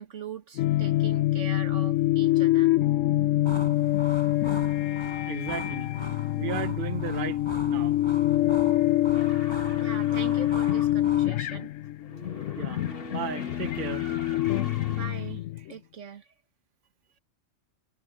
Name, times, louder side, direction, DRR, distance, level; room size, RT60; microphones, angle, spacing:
voice 1, 0.0-2.7 9.8-11.7 14.9-16.3, right 6 dB, 75° right, 1.9 m, -41 dB
sound 1, 0.6-15.7, left 15 dB, 85° left, 1.0 m, -25 dB
sound 2, 3.5-11.3, equal, 20° left, 5.6 m, -41 dB
voice 2, 5.3-5.9 6.4-7.4 7.7-8.0 12.5-12.8 13.1-14.1, right 7 dB, 45° right, 1.3 m, -34 dB
sound 3, 9.1-11.0 12.0-15.4, left 2 dB, 50° left, 2.5 m, -44 dB
omnidirectional pair, 1.3 m